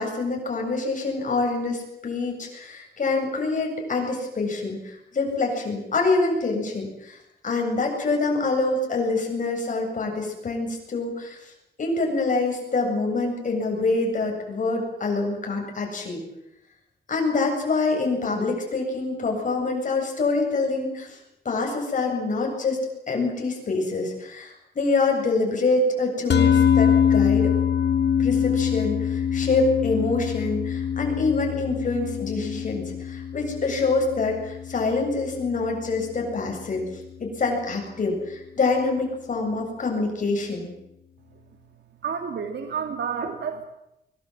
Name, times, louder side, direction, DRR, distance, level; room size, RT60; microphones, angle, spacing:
voice 1, 0.0-7.2 7.4-11.5 11.8-16.2 17.1-21.2 21.4-22.8 23.1-27.5 28.2-36.8 37.2-40.7, left 3 dB, 50° left, 1 dB, 7.9 m, -26 dB
sound 1, 26.3-36.7, left 8 dB, 90° left, 1.8 m, -24 dB
voice 2, 42.0-43.7, right 6 dB, 85° right, 5 dB, 2.4 m, -30 dB
24.0 x 23.0 x 7.7 m, 0.85 s
wide cardioid pair, 160°, 17 cm